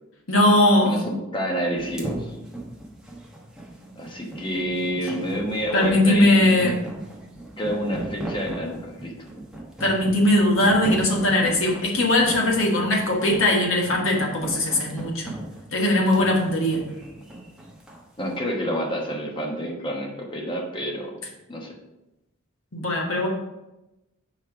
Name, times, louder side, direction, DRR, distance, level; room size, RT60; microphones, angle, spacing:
voice 1, 0.3-1.0 5.7-6.8 9.8-15.3 15.7-16.8 22.7-23.3, left 1 dB, 70° left, 0 dB, 1.5 m, -20 dB
voice 2, 0.8-2.4 4.0-6.7 7.6-9.1 18.2-21.2 21.5-21.7, equal, 25° left, 1 dB, 1.1 m, -29 dB
sound 1, 1.8-18.0, right 1 dB, 5° right, 1.0 m, -36 dB
4.7 x 4.3 x 5.9 m, 0.96 s
head